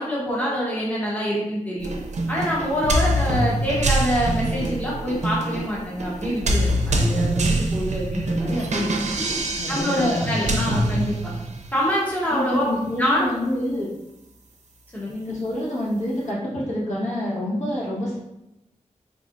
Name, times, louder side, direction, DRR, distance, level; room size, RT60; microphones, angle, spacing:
voice 1, 0.0-1.9 2.3-9.2 9.7-11.3 11.7-12.7 13.0-13.3 14.9-15.1, equal, 10° left, -6 dB, 1.0 m, -25 dB
sound 1, 1.8-11.7, right 1 dB, 65° right, 0.5 m, -24 dB
voice 2, 9.6-10.7 12.3-13.9 15.1-18.2, left 1 dB, 65° left, -7 dB, 1.3 m, -27 dB
3.7 x 3.2 x 2.5 m, 0.91 s
wide cardioid pair, 105°, 13 cm